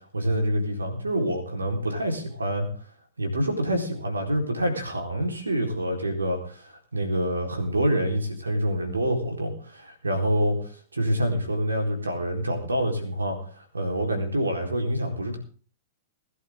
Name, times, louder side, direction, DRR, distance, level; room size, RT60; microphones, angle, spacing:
voice 1, 0.1-2.7 3.2-15.4, equal, 85° right, 4 dB, 4.1 m, -27 dB
21.0 x 11.0 x 3.7 m, 0.42 s
figure-of-eight pair, 100°, 0 cm